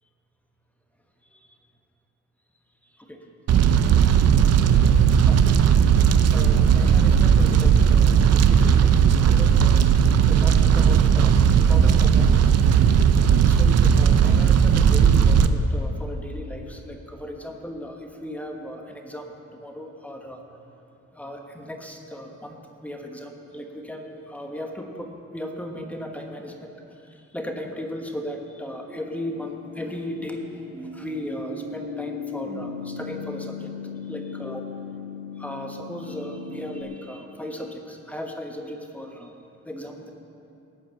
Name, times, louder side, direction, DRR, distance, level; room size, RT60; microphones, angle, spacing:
Fire, 3.5-15.5, right 7 dB, 55° right, 0.6 m, -17 dB
voice 1, 6.2-9.9 10.2-12.7 13.4-20.4 21.1-30.6 30.9-33.7 34.1-34.6 35.4-39.3 39.6-40.1, equal, 5° left, 2 dB, 1.2 m, -36 dB
sound 1, 28.9-36.8, left 5 dB, 20° right, 1.9 m, -37 dB
19.5 x 8.3 x 5.8 m, 2.8 s
cardioid pair, 150°, 30 cm